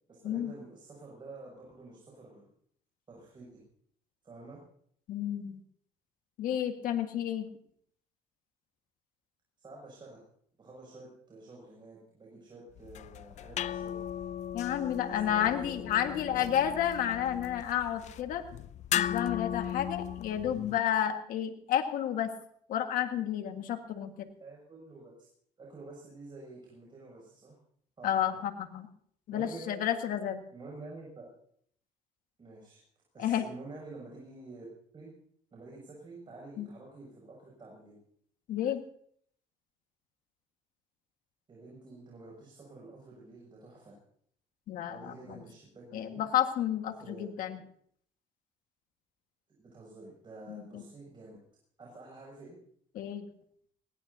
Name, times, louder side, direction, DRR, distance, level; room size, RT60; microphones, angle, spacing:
voice 1, 0.1-2.5 3.1-3.6 4.2-4.6 9.6-10.2 10.6-14.0 14.9-16.7 24.4-25.3 25.6-27.5 28.0-28.4 29.3-29.8 30.5-31.3 32.4-32.8 33.1-34.7 34.9-35.1 35.5-38.0 41.5-43.9 44.9-46.2 47.0-47.6 49.6-51.4 51.8-52.6, right 2 dB, 35° right, -3 dB, 6.7 m, -49 dB
voice 2, 5.1-5.6 6.4-7.5 14.5-18.4 18.9-22.3 22.7-24.3 28.0-28.9 29.3-30.4 33.2-33.4 36.6-36.7 38.5-38.8 44.7-45.4 45.9-47.6 50.5-50.8 53.0-53.3, left 10 dB, 75° left, 6 dB, 1.7 m, -31 dB
sound 1, 12.8-20.8, left 10 dB, 55° left, 0.5 m, -37 dB
21.0 x 17.5 x 2.8 m, 0.63 s
cardioid pair, 100°, 14 cm